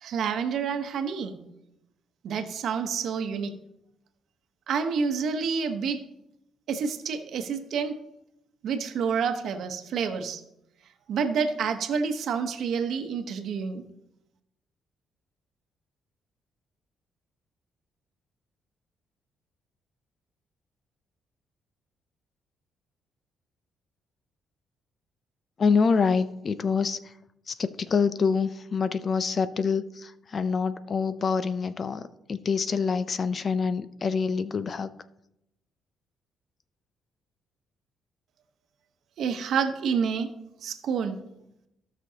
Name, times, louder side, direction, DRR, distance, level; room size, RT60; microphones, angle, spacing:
voice 1, 0.0-1.4 2.2-3.5 4.7-6.0 6.7-8.0 8.6-10.4 11.1-13.8 39.2-40.3 40.6-41.2, right 6 dB, 70° right, 1.0 m, -28 dB
voice 2, 25.6-27.0 27.5-34.9, left 5 dB, 45° left, 0.5 m, -26 dB
15.5 x 6.2 x 2.8 m
cardioid pair, 90°, 0 cm